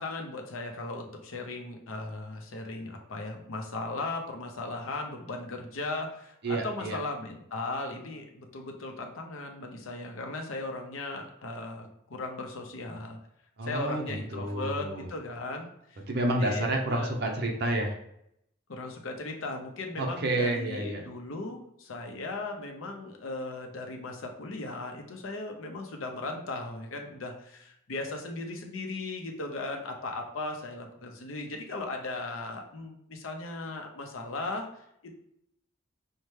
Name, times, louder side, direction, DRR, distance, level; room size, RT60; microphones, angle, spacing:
voice 1, 0.0-13.2 13.6-16.0 16.4-17.1 18.7-34.7 35.0-35.1, left 2 dB, 80° left, 2 dB, 0.7 m, -37 dB
voice 2, 6.4-7.0 13.6-15.1 16.1-17.9 20.0-21.0, right 1 dB, 55° right, 0 dB, 0.7 m, -29 dB
5.4 x 2.2 x 3.2 m, 0.76 s
head